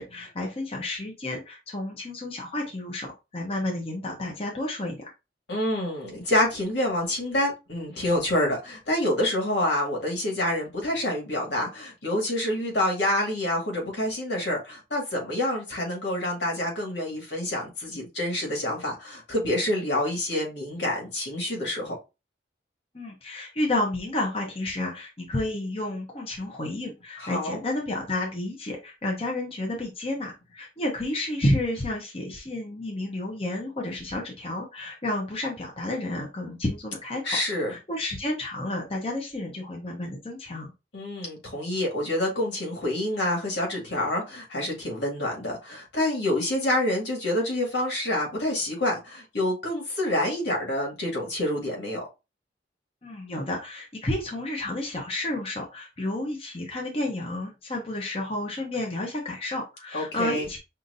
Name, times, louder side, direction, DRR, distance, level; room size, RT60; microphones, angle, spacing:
voice 1, 0.0-5.1 22.9-37.4 37.7-40.7 53.0-60.6, left 1 dB, 35° left, 0.9 m, -31 dB
voice 2, 5.5-22.0 27.2-27.6 37.2-37.7 40.9-52.0 59.9-60.5, left 1 dB, 80° left, 2.0 m, -27 dB
5.7 x 2.5 x 2.7 m
head